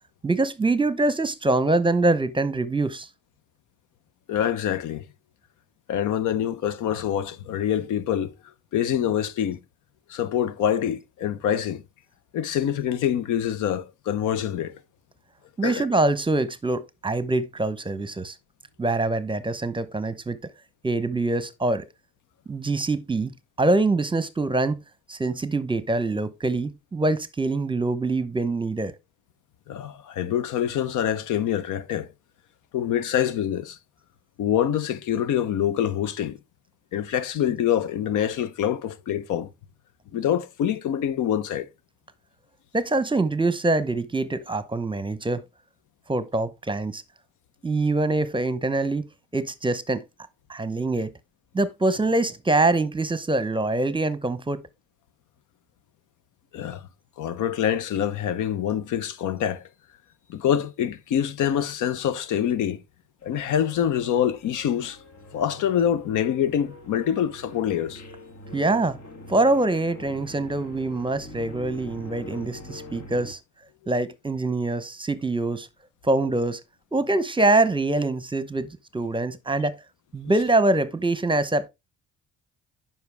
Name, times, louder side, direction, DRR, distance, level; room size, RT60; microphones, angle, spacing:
voice 1, 0.2-3.1 15.6-18.3 18.8-20.4 20.8-21.9 22.5-23.3 23.6-24.8 25.1-28.9 42.7-45.4 46.1-47.0 47.6-49.0 49.3-50.0 50.5-51.1 51.5-54.6 68.5-69.0 69.3-73.4 73.9-75.7 76.0-76.6 76.9-79.8 80.1-81.7, right 2 dB, 15° right, 0.9 m, -24 dB
voice 2, 4.3-5.0 5.9-8.3 8.7-9.6 10.1-11.8 12.3-14.7 15.6-15.9 29.7-32.1 32.7-33.8 34.4-36.4 36.9-39.5 40.1-41.7 56.5-56.9 57.2-59.6 60.3-62.8 63.2-65.0 65.3-68.0, left 9 dB, 80° left, 0.9 m, -25 dB
sound 1, 63.2-73.3, left 2 dB, 60° left, 2.0 m, -43 dB
9.4 x 5.9 x 3.5 m
cardioid pair, 90°, 30 cm